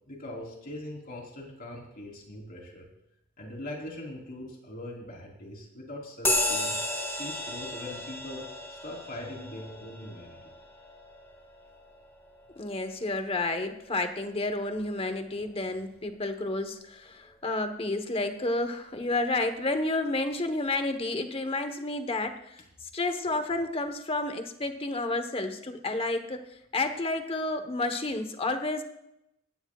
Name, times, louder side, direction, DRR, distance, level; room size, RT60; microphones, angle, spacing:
voice 1, 0.1-2.9 3.4-6.8 7.2-8.4 8.7-10.6, left 1 dB, 45° left, 0 dB, 3.7 m, -41 dB
sound 1, 6.2-14.1, left 1 dB, 10° left, 1.9 m, -34 dB
voice 2, 12.6-22.5 22.9-26.4 26.7-28.8, left 2 dB, 30° left, 7 dB, 1.1 m, -30 dB
18.5 x 14.5 x 2.4 m, 0.83 s
head